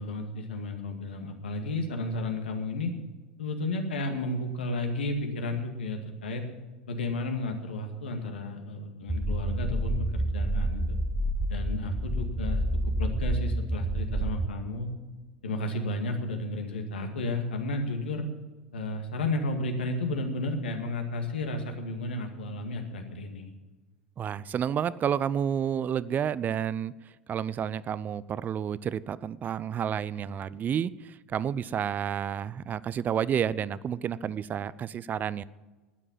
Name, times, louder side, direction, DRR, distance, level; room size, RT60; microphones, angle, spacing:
voice 1, 0.0-2.9 3.4-6.4 6.9-11.0 11.5-12.6 13.0-14.9 15.4-18.3 18.7-23.5, left 2 dB, 80° left, 4 dB, 2.1 m, -32 dB
sound 1, 9.1-14.5, right 1 dB, 10° right, 0.9 m, -29 dB
voice 2, 24.2-26.9 27.3-35.4, right 8 dB, 30° right, 19 dB, 0.5 m, -30 dB
12.5 x 9.8 x 7.4 m, 1.2 s
hypercardioid pair, 85°, 6 cm